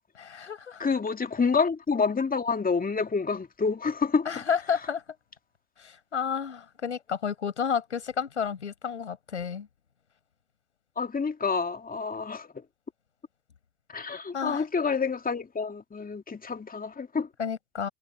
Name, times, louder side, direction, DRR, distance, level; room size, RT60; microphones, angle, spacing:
voice 1, 0.2-0.9 4.3-5.0 5.8-9.7 14.3-14.6 17.4-17.9, left 7 dB, 90° left, 7.0 m, -31 dB
voice 2, 0.8-4.3 11.0-12.5 13.9-17.3, left 5 dB, 25° left, 2.5 m, -28 dB
figure-of-eight pair, 50°, 34 cm